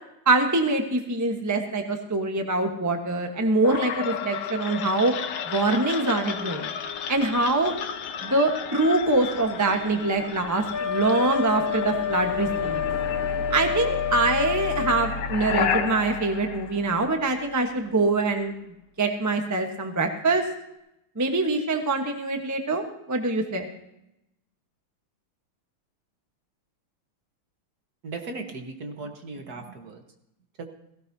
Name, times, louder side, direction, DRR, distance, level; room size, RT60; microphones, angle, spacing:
voice 1, 0.2-5.1 5.5-6.7 7.1-7.7 8.2-12.8 13.5-18.5 19.0-20.4 21.2-23.7, right 2 dB, 15° right, 4 dB, 0.8 m, -24 dB
sound 1, 3.6-17.5, left 6 dB, 85° left, 1.9 m, -33 dB
Wind instrument woodwind instrument, 10.7-15.1, left 8 dB, 35° left, 1.0 m, -28 dB
voice 2, 28.0-30.0 30.6-30.7, right 3 dB, 50° right, 4 dB, 1.6 m, -37 dB
17.0 x 16.5 x 2.8 m, 0.86 s
omnidirectional pair, 2.3 m